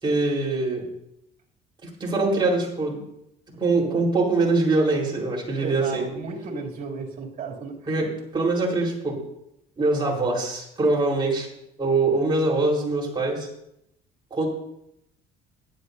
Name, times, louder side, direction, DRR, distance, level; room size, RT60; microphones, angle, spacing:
voice 1, 0.0-0.8 1.8-3.0 3.6-6.1 7.9-8.1 8.3-9.2 9.8-11.5 11.8-13.5 14.3-14.5, right 3 dB, 25° right, -3 dB, 4.5 m, -23 dB
voice 2, 5.6-7.7, right 4 dB, 55° right, -2 dB, 3.1 m, -33 dB
15.5 x 11.5 x 2.8 m, 0.80 s
cardioid pair, 110°, 17 cm